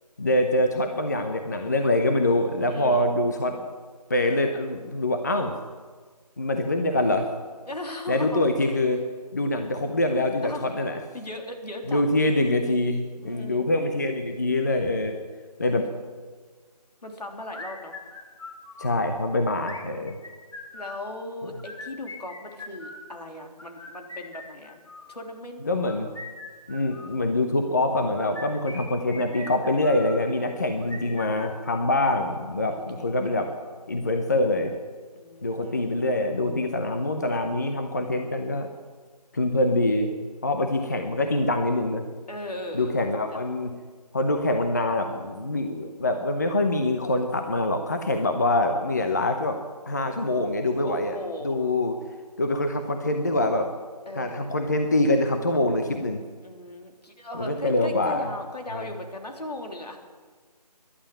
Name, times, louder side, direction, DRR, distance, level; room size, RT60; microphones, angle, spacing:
voice 1, 0.2-3.6 4.1-5.6 6.4-7.3 8.1-9.0 9.3-11.0 11.9-15.2 15.6-15.9 18.8-20.1 25.7-26.1 26.7-33.5 33.9-34.7 35.4-38.7 39.3-40.1 40.4-42.0 42.7-43.7 44.1-49.6 49.9-51.2 51.4-51.9 52.4-53.7 54.2-56.2 57.4-58.3 58.7-58.9, left 1 dB, 25° left, 5 dB, 0.8 m, -25 dB
voice 2, 2.7-3.1 7.6-8.4 10.4-10.7 11.1-12.0 13.2-13.7 17.0-17.9 19.7-20.1 20.7-24.8 25.1-25.8 30.4-31.4 32.7-33.2 35.1-36.0 42.3-43.0 43.3-43.4 50.1-50.6 50.8-51.7 54.1-54.5 56.4-60.0, left 1 dB, 75° left, 3 dB, 3.3 m, -38 dB
sound 1, 17.5-19.0 19.6-21.0 21.5-23.1 23.6-25.2 25.7-27.2 27.9-30.2 30.8-32.3, left 2 dB, 50° left, 3.0 m, -42 dB
13.0 x 11.5 x 9.2 m, 1.5 s
figure-of-eight pair, 170°, 21 cm